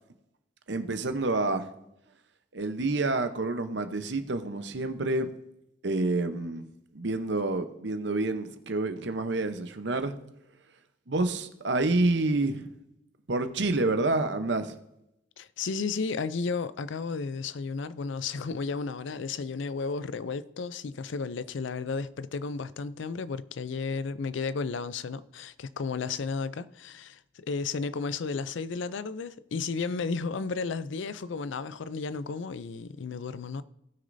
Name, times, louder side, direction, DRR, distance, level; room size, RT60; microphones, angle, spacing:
voice 1, 0.7-1.7 2.5-5.3 5.8-6.6 6.9-10.1 11.1-12.7 13.3-14.8, right 2 dB, 60° right, 0.8 m, -28 dB
voice 2, 15.4-33.6, left 4 dB, 70° left, 0.4 m, -33 dB
18.0 x 6.3 x 2.6 m
head